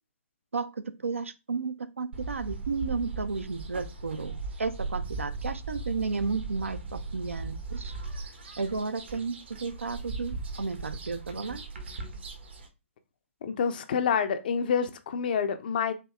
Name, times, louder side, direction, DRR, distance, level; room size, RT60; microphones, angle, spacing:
voice 1, 0.5-7.9 8.6-11.6, right 4 dB, 70° right, 0.6 m, -33 dB
sound 1, 2.1-12.7, right 3 dB, 50° right, 1.0 m, -38 dB
voice 2, 13.4-15.9, left 6 dB, 40° left, 0.5 m, -27 dB
4.4 x 2.8 x 3.3 m
figure-of-eight pair, 130°, 7 cm